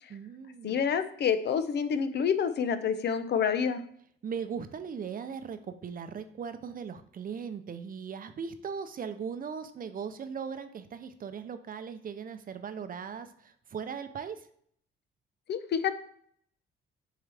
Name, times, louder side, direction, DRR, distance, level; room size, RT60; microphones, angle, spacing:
voice 1, 0.1-0.8 4.2-14.5, right 6 dB, 45° right, 10 dB, 0.7 m, -39 dB
voice 2, 0.6-3.8 15.5-16.0, left 7 dB, 60° left, 10 dB, 0.7 m, -28 dB
7.3 x 4.6 x 3.5 m, 0.63 s
cardioid pair, 90°, 20 cm